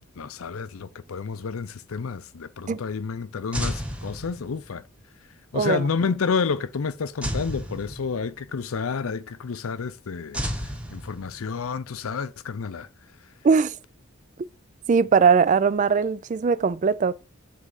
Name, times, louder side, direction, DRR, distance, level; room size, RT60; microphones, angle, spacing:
voice 1, 0.0-4.8 5.5-10.4 10.9-12.9, left 5 dB, 80° left, 0.5 m, -30 dB
sound 1, 3.5-4.8 7.2-8.5 10.3-11.6, equal, 5° right, 0.8 m, -32 dB
voice 2, 5.5-5.8 13.4-13.7 14.9-17.1, right 5 dB, 35° right, 0.3 m, -20 dB
7.5 x 3.6 x 4.8 m
head